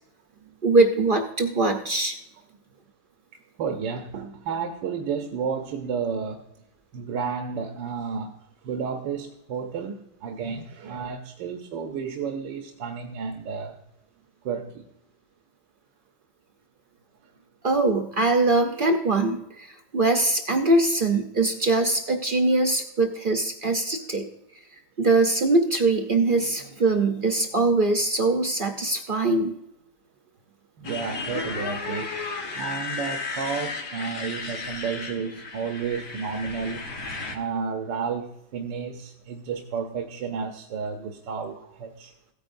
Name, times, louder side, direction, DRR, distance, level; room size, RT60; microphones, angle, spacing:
voice 1, 0.6-2.1 17.6-19.4 19.9-24.3 25.0-29.5, right 2 dB, 55° right, 4 dB, 0.6 m, -22 dB
voice 2, 3.6-6.5 6.9-8.4 8.6-10.0 10.2-13.8 14.4-14.8 30.8-32.1 32.5-36.9 37.3-42.1, right 6 dB, 90° right, 4 dB, 1.5 m, -31 dB
Motorcycle, 30.8-37.4, left 4 dB, 70° left, 2.1 m, -34 dB
16.0 x 9.2 x 2.6 m, 0.83 s
omnidirectional pair, 1.9 m